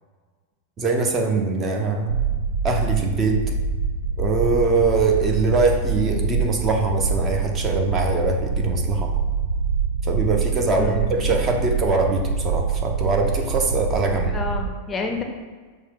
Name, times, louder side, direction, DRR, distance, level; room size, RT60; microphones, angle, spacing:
voice 1, 0.8-2.1 2.6-3.4 4.2-9.1 10.0-14.3, right 3 dB, 25° right, 2 dB, 0.6 m, -22 dB
sound 1, 2.1-14.7, right 5 dB, 90° right, 0.5 m, -25 dB
voice 2, 10.7-11.2 14.2-15.2, left 3 dB, 20° left, 3 dB, 0.5 m, -29 dB
6.2 x 2.1 x 3.6 m, 1.4 s
figure-of-eight pair, 90°, 0 cm